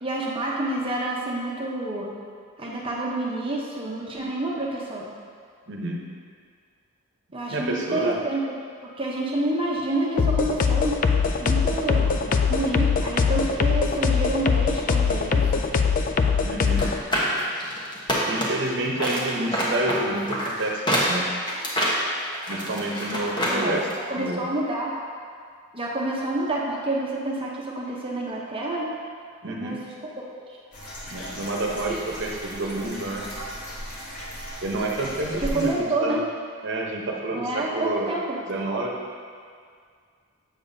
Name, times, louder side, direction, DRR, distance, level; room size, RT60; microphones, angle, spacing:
voice 1, 0.0-2.1 2.6-5.1 7.3-8.4 8.8-11.0 11.4-15.7 23.5-23.8 24.1-24.9 25.7-28.9 29.5-29.8 30.2-30.6 35.4-36.2 37.3-38.4, right 2 dB, 25° right, -3 dB, 0.8 m, -28 dB
voice 2, 5.7-6.0 7.5-8.2 16.4-16.9 18.2-21.3 22.5-23.9 24.2-24.4 29.4-29.8 31.1-33.2 34.6-36.2 36.6-38.1 38.5-38.9, right 2 dB, 55° right, -1 dB, 0.9 m, -29 dB
sound 1, 10.2-17.0, left 5 dB, 35° left, 0.3 m, -22 dB
sound 2, 16.7-18.7 19.0-23.6 23.9-24.0, equal, 20° left, 1.0 m, -26 dB
sound 3, 30.7-35.7, equal, 85° left, 1.7 m, -36 dB
7.9 x 6.9 x 2.7 m, 2.1 s
head